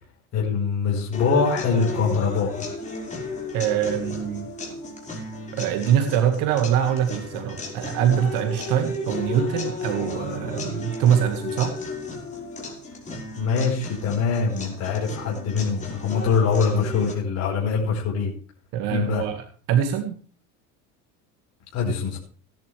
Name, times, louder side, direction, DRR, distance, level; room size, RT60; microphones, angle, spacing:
voice 1, 0.3-2.7 13.4-18.3 18.9-19.2 21.7-22.2, left 5 dB, 45° left, -2 dB, 4.8 m, -23 dB
sound 1, 1.1-17.1, left 3 dB, 20° left, 5.2 m, -34 dB
voice 2, 3.5-4.5 5.5-11.7 18.7-20.2, right 9 dB, 65° right, 6 dB, 2.0 m, -23 dB
17.5 x 10.5 x 3.4 m, 0.42 s
supercardioid pair, 120°, 35 cm